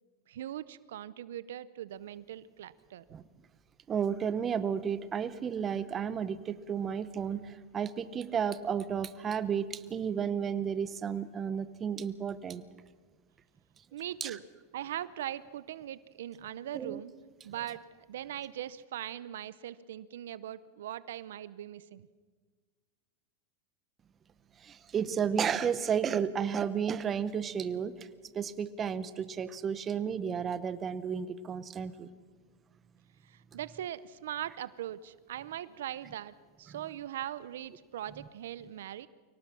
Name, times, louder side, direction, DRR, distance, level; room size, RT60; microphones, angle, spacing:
voice 1, 0.3-3.0 13.9-14.4 14.7-17.1 17.4-17.8 18.1-22.1 33.2-39.1, right 11 dB, 80° right, 17 dB, 0.6 m, -40 dB
voice 2, 3.9-12.6 14.2-14.4 16.7-17.0 24.6-27.9 28.3-32.1, right 7 dB, 25° right, 14 dB, 0.9 m, -32 dB
23.5 x 18.0 x 6.2 m, 1.5 s
supercardioid pair, 125°, 0 cm